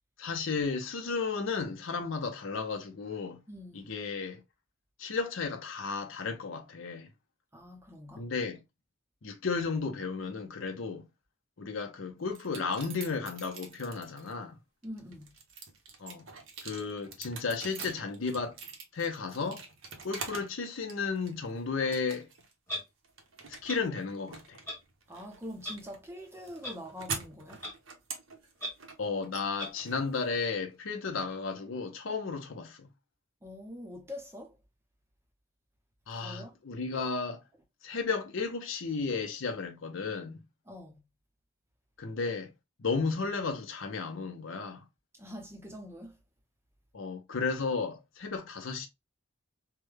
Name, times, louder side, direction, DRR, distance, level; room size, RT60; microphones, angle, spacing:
voice 1, 0.2-3.4 3.7-4.4 5.0-7.1 8.2-8.6 9.2-11.0 11.6-14.5 16.0-16.2 16.6-18.5 18.9-19.6 20.0-22.3 23.5-24.6 29.0-32.9 36.1-37.4 37.8-40.4 42.0-42.5 42.8-44.8 46.9-48.9, left 4 dB, 70° left, 0.7 m, -33 dB
voice 2, 3.5-3.9 7.5-8.3 14.8-15.3 25.1-27.6 33.4-34.6 36.1-36.6 40.7-41.0 45.2-46.2, left 1 dB, 10° right, 0.6 m, -44 dB
sound 1, 12.3-14.3 14.8-20.6 20.9-21.5 21.9-22.5 22.8-30.7, right 5 dB, 70° right, 0.8 m, -44 dB
Clock, 22.7-22.8 23.7-23.8 24.7-24.8 25.6-25.7 26.6-26.7 27.6-27.7 28.6-28.7 29.6-29.7, left 1 dB, 10° left, 1.2 m, -36 dB
3.3 x 2.2 x 3.2 m
head